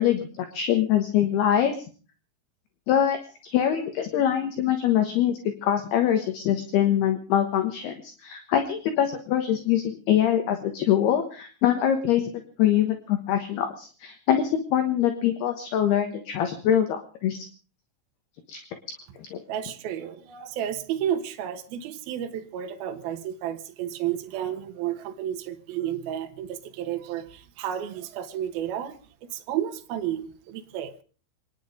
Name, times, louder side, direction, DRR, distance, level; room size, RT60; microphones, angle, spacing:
voice 1, 0.0-1.7 2.9-3.2 3.4-12.3 12.6-17.5 18.5-18.6 19.2-19.4, left 10 dB, 65° left, 3.0 m, -24 dB
voice 2, 19.5-31.0, right 10 dB, 65° right, 2.7 m, -32 dB
27.0 x 10.5 x 5.1 m
omnidirectional pair, 5.5 m